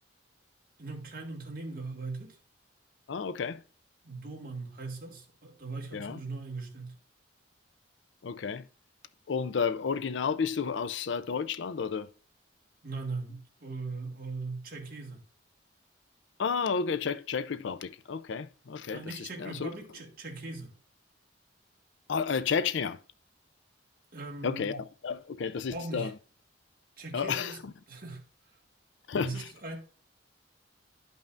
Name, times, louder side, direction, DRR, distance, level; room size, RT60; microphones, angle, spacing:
voice 1, 0.8-2.4 4.0-6.9 12.8-15.2 18.9-20.7 24.1-24.8 25.7-26.1 27.0-27.6 27.9-28.2 29.1-29.8, right 3 dB, 45° right, 1.7 m, -39 dB
voice 2, 3.1-3.6 5.9-6.2 8.2-8.6 9.3-12.1 16.4-19.8 22.1-23.0 24.4-26.1 27.1-27.7 29.1-29.5, left 6 dB, 65° left, 0.4 m, -32 dB
12.0 x 5.5 x 2.5 m
head